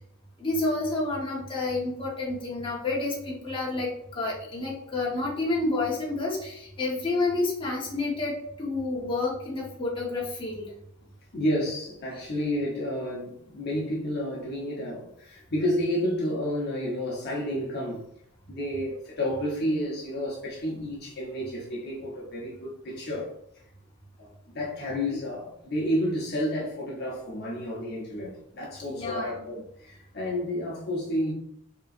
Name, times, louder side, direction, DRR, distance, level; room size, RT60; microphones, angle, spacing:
voice 1, 0.4-10.7 28.9-29.4, left 2 dB, 25° left, 1.0 m, -29 dB
voice 2, 11.3-18.0 18.5-23.3 24.2-31.3, equal, 50° left, 0.9 m, -30 dB
5.3 x 3.0 x 2.5 m
head